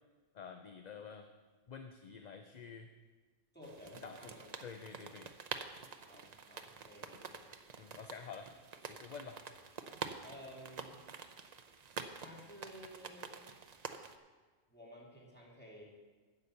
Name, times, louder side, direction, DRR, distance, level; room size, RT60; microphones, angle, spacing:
voice 1, 0.3-1.3 1.7-2.9 3.9-4.3 4.6-5.3 7.8-8.5 8.8-9.4, left 6 dB, 45° left, 6 dB, 0.6 m, -49 dB
voice 2, 3.5-4.5 6.0-7.4 10.2-11.0 12.2-13.4 14.7-15.8, equal, 10° left, -4 dB, 2.7 m, -54 dB
sound 1, 3.6-14.2, right 5 dB, 45° right, 0.7 m, -48 dB
9.8 x 7.0 x 8.1 m, 1.4 s
omnidirectional pair, 1.1 m